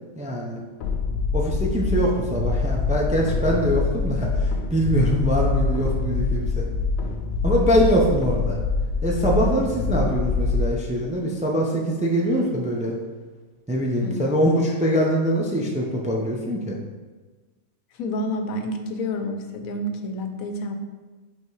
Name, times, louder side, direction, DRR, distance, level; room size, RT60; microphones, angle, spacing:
voice 1, 0.2-0.6 1.3-6.6 7.4-8.6 9.0-12.9 13.7-16.8, equal, 10° right, -1 dB, 0.4 m, -23 dB
sound 1, 0.8-10.7, left 4 dB, 60° left, 0.7 m, -25 dB
voice 2, 7.7-8.0 14.0-14.4 18.0-20.8, left 1 dB, 80° left, 6 dB, 1.1 m, -29 dB
5.5 x 3.7 x 4.7 m, 1.3 s
omnidirectional pair, 1.4 m